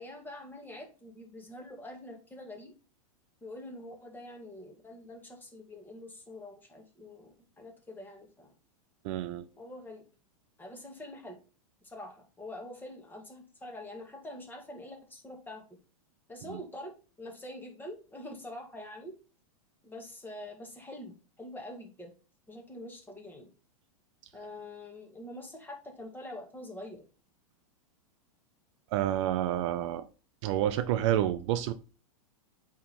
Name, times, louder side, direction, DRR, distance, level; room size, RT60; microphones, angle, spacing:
voice 1, 0.0-2.7 3.4-8.5 9.5-10.0 10.6-11.4 11.8-15.6 16.3-16.9 17.2-19.1 19.8-22.1 22.5-23.5 24.3-27.0, left 1 dB, 10° left, 2.1 m, -45 dB
voice 2, 9.0-9.5 16.4-16.6 28.9-30.1 30.4-31.7, right 12 dB, 55° right, 0.7 m, -29 dB
8.5 x 3.7 x 4.3 m
hypercardioid pair, 115°, 19 cm